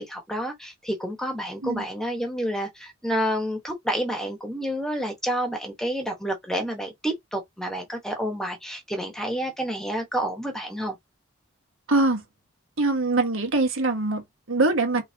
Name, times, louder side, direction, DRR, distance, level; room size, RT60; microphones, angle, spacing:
voice 1, 0.0-11.0, equal, ahead, 1.3 m, -29 dB
voice 2, 11.9-12.2 12.8-15.0, right 2 dB, 90° right, 1.6 m, -23 dB
5.2 x 3.3 x 2.9 m
head